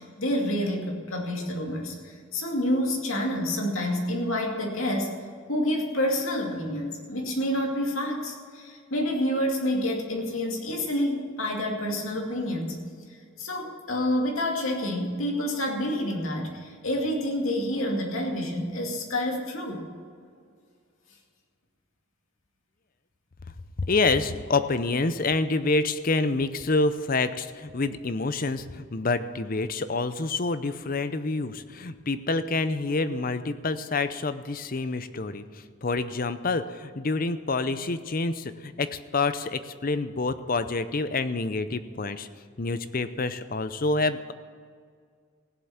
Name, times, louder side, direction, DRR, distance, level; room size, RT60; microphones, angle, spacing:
voice 1, 0.0-5.2 5.5-12.8 13.4-19.9, left 1 dB, 70° left, 0 dB, 2.5 m, -28 dB
voice 2, 23.9-42.3 42.6-44.3, left 3 dB, 40° left, 12 dB, 0.6 m, -27 dB
16.5 x 7.7 x 7.2 m, 2.1 s
head